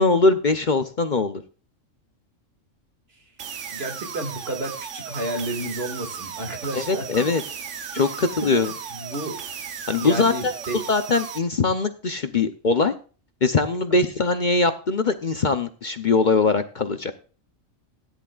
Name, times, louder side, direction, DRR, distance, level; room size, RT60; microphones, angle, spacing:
voice 1, 0.0-1.4 6.7-7.4 7.9-8.7 9.9-10.5 10.9-12.9 13.4-17.1, left 3 dB, 45° left, 9 dB, 0.7 m, -21 dB
sound 1, 3.4-11.4, right 7 dB, 65° right, 1.2 m, -36 dB
voice 2, 3.7-7.0 8.0-9.4 10.0-10.8 13.9-14.1, right 2 dB, 50° right, 4 dB, 2.5 m, -32 dB
17.0 x 10.0 x 2.4 m, 0.38 s
omnidirectional pair, 1.4 m